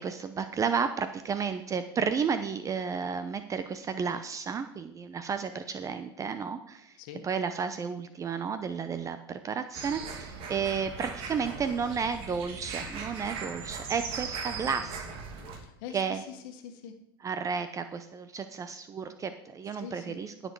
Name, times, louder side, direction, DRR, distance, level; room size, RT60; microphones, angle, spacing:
voice 1, 0.0-6.9 7.2-15.1 15.9-16.2 17.2-20.5, right 6 dB, 25° right, 10 dB, 0.7 m, -32 dB
voice 2, 7.0-7.3 15.5-17.0 19.6-20.2, left 8 dB, 65° left, 7 dB, 1.5 m, -44 dB
sound 1, 9.7-15.6, right 5 dB, 50° right, 2.7 m, -39 dB
16.0 x 6.8 x 4.7 m, 0.79 s
hypercardioid pair, 100°, 12 cm